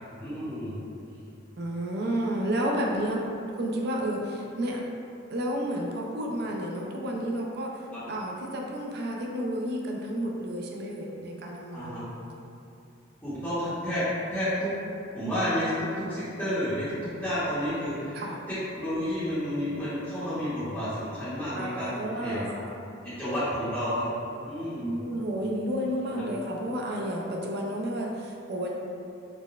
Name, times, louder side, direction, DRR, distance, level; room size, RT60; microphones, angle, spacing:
voice 1, 0.2-0.8 11.7-12.1 13.2-14.0 14.3-14.7 15.1-21.9 22.2-22.4 23.0-25.0 26.1-26.2, equal, 10° left, -16 dB, 0.8 m, -31 dB
voice 2, 1.6-3.2 3.5-4.8 5.3-12.0 18.1-18.4 21.5-22.7 24.8-28.7, equal, 55° right, -1 dB, 0.4 m, -31 dB
3.8 x 2.1 x 2.3 m, 2.6 s
head